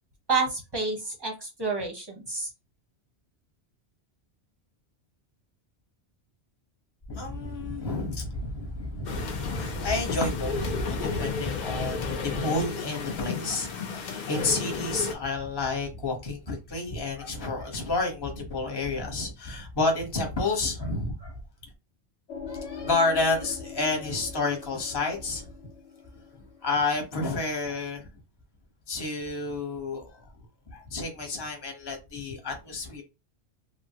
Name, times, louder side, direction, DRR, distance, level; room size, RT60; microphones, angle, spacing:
voice 1, 0.3-2.5, right 4 dB, 25° right, 0.6 m, -29 dB
voice 2, 7.1-21.3 22.5-25.5 26.6-28.1 28.9-30.2 30.7-33.0, left 3 dB, 25° left, 0.8 m, -30 dB
sound 1, 9.0-15.1, left 5 dB, 55° left, 0.5 m, -33 dB
sound 2, 22.3-27.5, left 6 dB, 85° left, 1.0 m, -42 dB
3.1 x 2.1 x 2.8 m
omnidirectional pair, 1.1 m